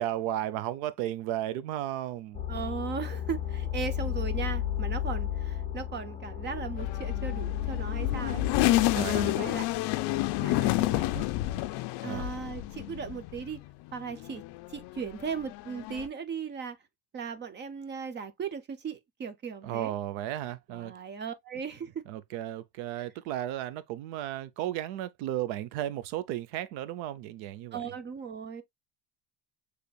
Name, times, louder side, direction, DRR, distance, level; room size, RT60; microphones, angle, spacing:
voice 1, 0.0-2.4 8.9-9.4 12.0-12.3 19.6-20.9 22.1-27.8, right 13 dB, 70° right, 0.8 m, -34 dB
sound 1, 2.3-9.3, left 11 dB, 15° left, 1.1 m, -33 dB
voice 2, 2.5-9.7 10.4-11.3 12.0-13.6 13.9-14.4 14.7-16.8 17.1-19.9 20.7-22.0 27.7-28.6, right 6 dB, 25° right, 0.4 m, -37 dB
sound 2, 6.8-13.7 14.1-16.1, left 17 dB, 55° left, 0.5 m, -30 dB
6.8 x 3.3 x 2.3 m
cardioid pair, 150°, 49 cm